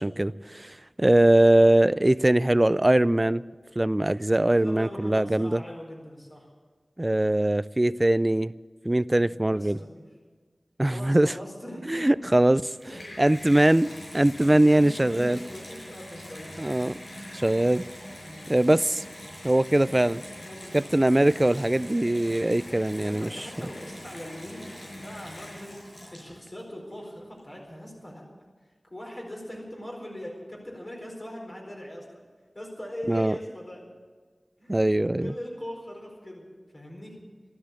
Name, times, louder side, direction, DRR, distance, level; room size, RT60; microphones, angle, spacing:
voice 1, 0.0-3.4 3.8-5.6 7.0-8.5 8.8-9.8 10.8-11.3 11.9-12.7 13.2-15.4 16.6-17.0 17.3-17.8 18.5-19.0 19.4-20.2 20.7-23.5 33.1-33.3 34.7-35.3, right 1 dB, 25° right, 0.4 m, -22 dB
voice 2, 4.5-6.5 9.1-10.0 10.9-12.1 12.9-13.1 14.7-16.7 18.2-18.5 20.5-20.9 23.0-28.2 28.9-32.0 32.5-33.8 34.6-34.8 35.2-36.4 36.7-37.2, equal, 40° left, 4.5 m, -41 dB
Water tap faucet / Bathtub (filling or washing), 12.5-26.6 27.4-27.5, left 1 dB, 85° left, 5.7 m, -43 dB
13.5 x 12.5 x 8.3 m
wide cardioid pair, 65°, 0 cm